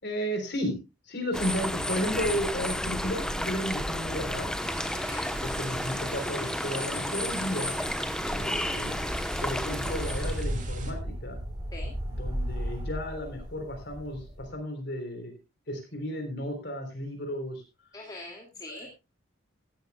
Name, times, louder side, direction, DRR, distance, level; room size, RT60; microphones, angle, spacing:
voice 1, 0.0-0.8 1.0-4.5 5.4-7.7 8.3-11.4 12.1-15.4 15.7-17.6 18.7-18.9, equal, 55° left, 4 dB, 3.7 m, -33 dB
sound 1, 1.3-10.4, left 1 dB, 5° left, 0.9 m, -32 dB
sound 2, 2.8-14.5, equal, 20° right, 3.9 m, -37 dB
sound 3, 4.6-10.9, right 4 dB, 40° right, 2.3 m, -46 dB
voice 2, 17.9-18.9, left 2 dB, 20° left, -1 dB, 2.3 m, -43 dB
17.0 x 13.0 x 2.3 m, 0.26 s
head